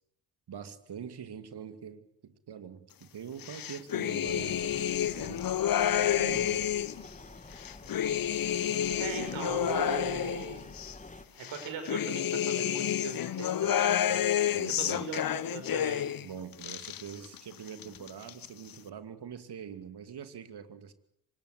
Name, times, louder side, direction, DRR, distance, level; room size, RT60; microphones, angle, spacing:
voice 1, 0.5-5.5 6.0-6.7 14.5-15.1 16.2-20.9, right 8 dB, 55° right, 10 dB, 2.6 m, -44 dB
sound 1, 3.4-7.0 7.5-10.9 11.4-16.3 16.5-17.4 17.7-18.5, left 10 dB, 45° left, 1.0 m, -30 dB
sound 2, 4.2-11.3, left 2 dB, 15° left, 3.1 m, -48 dB
voice 2, 9.0-10.6 11.3-14.4 14.8-16.1, right 5 dB, 70° right, 6 dB, 6.1 m, -39 dB
25.0 x 20.5 x 8.2 m, 0.73 s
hypercardioid pair, 40°, 48 cm